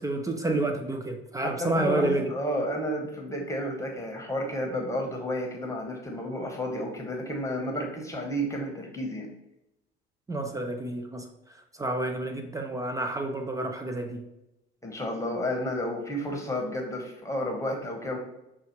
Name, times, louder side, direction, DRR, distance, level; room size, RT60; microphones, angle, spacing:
voice 1, 0.0-2.3 10.3-11.3 11.8-14.2, right 2 dB, 10° right, 4 dB, 0.4 m, -29 dB
voice 2, 1.4-9.3 14.8-18.2, equal, 10° left, 1 dB, 1.0 m, -31 dB
5.5 x 2.3 x 3.1 m, 0.89 s
figure-of-eight pair, 60°, 32 cm